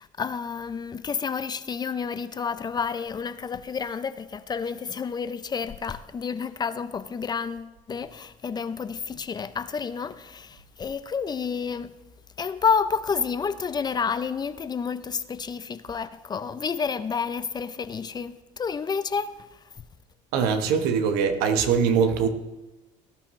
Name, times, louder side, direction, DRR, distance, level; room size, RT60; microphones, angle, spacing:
voice 1, 0.0-11.9 12.4-19.9, left 6 dB, 25° left, 0.6 m, -30 dB
voice 2, 20.3-22.3, right 6 dB, 80° right, 1.3 m, -22 dB
18.0 x 11.0 x 3.2 m
supercardioid pair, 100°, 16 cm